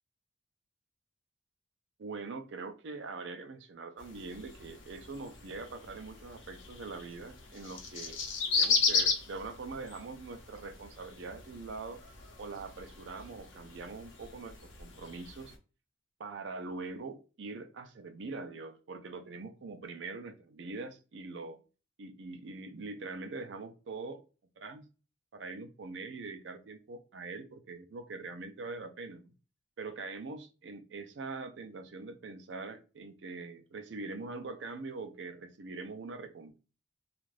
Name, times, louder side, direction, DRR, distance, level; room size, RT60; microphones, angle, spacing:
voice 1, 2.0-8.2 8.5-12.0 12.4-15.5 16.2-21.6 22.0-24.2 24.6-24.9 25.3-29.3 29.8-36.6, right 3 dB, 70° right, 0.5 m, -43 dB
sound 1, 4.0-15.6, left 5 dB, 85° left, 0.7 m, -36 dB
2.5 x 2.4 x 3.2 m
head